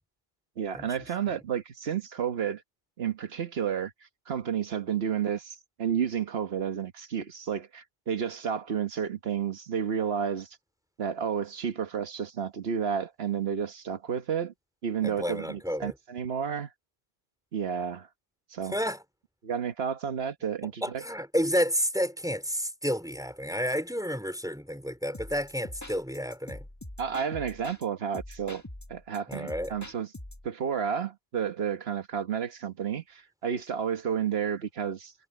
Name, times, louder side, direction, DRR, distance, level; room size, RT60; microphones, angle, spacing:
voice 1, 0.6-2.6 3.0-3.9 4.3-10.5 11.0-14.5 14.8-16.7 17.5-18.1 18.5-18.7 19.4-21.0 27.0-28.6 28.9-30.1 30.4-35.1, right 7 dB, 75° right, 1.4 m, -31 dB
voice 2, 15.0-15.9 18.7-19.0 20.8-26.6 29.3-29.7, equal, 5° right, 4.7 m, -30 dB
sound 1, 25.1-27.9 28.1-30.5, left 1 dB, 15° left, 1.7 m, -44 dB
omnidirectional pair, 1.0 m